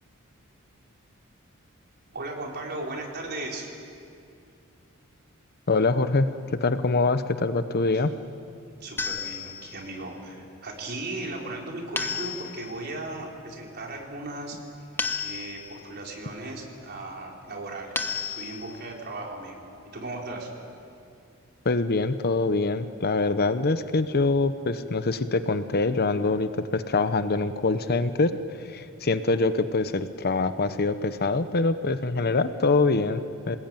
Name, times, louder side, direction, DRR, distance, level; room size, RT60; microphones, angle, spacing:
voice 1, 2.1-3.7 7.9-8.1 8.8-14.6 14.9-20.5, right 2 dB, 50° right, 0 dB, 4.3 m, -37 dB
voice 2, 5.7-6.3 6.6-8.1 21.6-28.4 28.7-33.6, left 3 dB, 45° left, 11 dB, 0.9 m, -24 dB
sound 1, 9.0-9.9 12.0-12.8 15.0-15.9 17.9-18.9, left 4 dB, 10° left, 1.2 m, -32 dB
27.5 x 19.5 x 9.1 m, 2.5 s
head